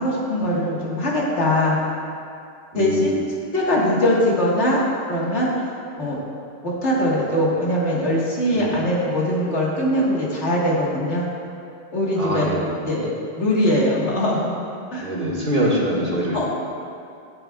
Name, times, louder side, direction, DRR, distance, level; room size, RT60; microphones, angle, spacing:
voice 1, 0.0-1.8 2.7-3.2 3.5-4.8 5.1-5.7 6.0-6.2 6.6-11.3 11.9-12.5 12.9-13.1 13.4-14.6 14.9-15.1 15.6-15.7 16.3-16.4, left 1 dB, 70° left, -5 dB, 2.0 m, -21 dB
voice 2, 2.7-3.1 8.5-8.8 12.2-12.8 15.0-16.4, right 1 dB, 50° right, -5 dB, 1.9 m, -24 dB
15.0 x 7.7 x 2.4 m, 2.4 s
omnidirectional pair, 1.2 m